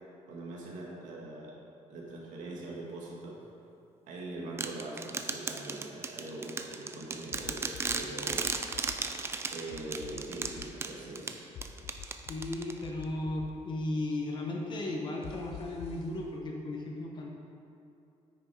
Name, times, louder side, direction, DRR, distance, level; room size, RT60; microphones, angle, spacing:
voice 1, 0.3-1.5 1.9-3.4 4.1-8.5 9.5-11.4, right 2 dB, 90° right, -3 dB, 1.8 m, -42 dB
sound 1, 4.6-13.0, right 4 dB, 20° right, 0.4 m, -36 dB
sound 2, 7.3-8.0 8.3-9.0 9.7-10.7 11.5-12.5 12.8-13.5 15.2-16.0, left 8 dB, 55° left, 0.5 m, -46 dB
voice 2, 12.3-17.3, left 2 dB, 40° left, 0 dB, 1.0 m, -35 dB
9.5 x 6.3 x 4.7 m, 2.6 s
cardioid pair, 175°, 13 cm